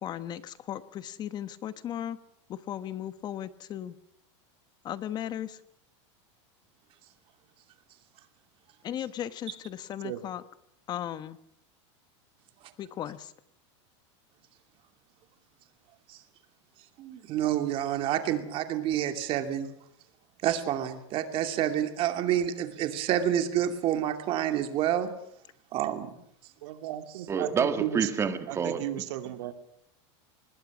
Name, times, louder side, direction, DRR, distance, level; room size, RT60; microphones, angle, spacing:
voice 1, 0.0-2.2 2.5-3.9 4.8-5.6 8.8-10.4 10.9-11.4 12.8-13.3, left 10 dB, 25° left, 14 dB, 1.1 m, -36 dB
voice 2, 17.0-19.7 20.4-25.1 25.7-26.1, right 11 dB, 35° right, 7 dB, 2.7 m, -28 dB
voice 3, 26.6-28.1 28.5-29.5, right 13 dB, 65° right, 8 dB, 2.6 m, -34 dB
voice 4, 27.3-28.9, right 6 dB, 15° right, 9 dB, 1.8 m, -28 dB
25.5 x 20.0 x 6.2 m, 0.76 s
supercardioid pair, 150°, 16 cm